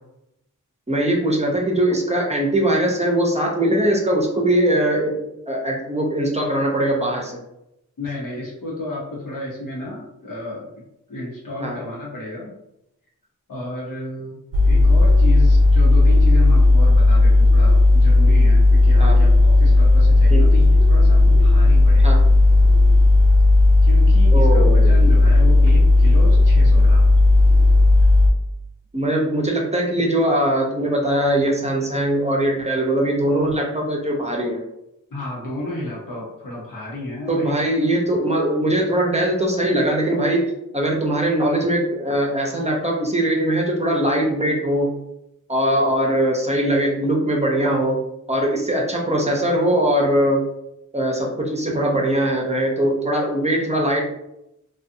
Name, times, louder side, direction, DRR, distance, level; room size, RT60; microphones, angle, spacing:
voice 1, 0.9-7.4 11.6-11.8 19.0-19.2 20.3-20.5 22.0-22.2 24.3-24.9 28.9-34.6 37.3-45.0 45.5-48.0 48.3-50.5 50.9-54.0, right 1 dB, 20° right, -1 dB, 0.6 m, -21 dB
voice 2, 8.0-12.6 13.5-22.2 23.8-27.2 35.1-37.6, left 2 dB, 85° left, -4 dB, 0.9 m, -32 dB
sound 1, 14.5-28.3, left 2 dB, 75° right, 0.5 m, -13 dB
2.5 x 2.3 x 2.6 m, 0.85 s
cardioid pair, 55°, 32 cm